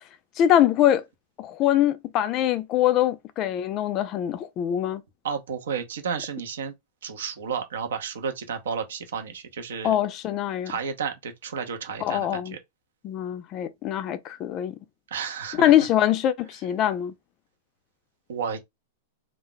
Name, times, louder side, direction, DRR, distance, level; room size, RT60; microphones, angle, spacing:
voice 1, 0.4-1.0 1.4-5.0 9.8-10.7 12.0-12.6 13.0-14.7 15.5-17.1, left 11 dB, 30° left, 0.3 m, -23 dB
voice 2, 5.2-6.7 7.0-9.9 10.7-12.6 15.1-15.7 18.3-18.6, right 6 dB, 90° right, 0.8 m, -32 dB
2.3 x 2.0 x 3.8 m
supercardioid pair, 165°, 0 cm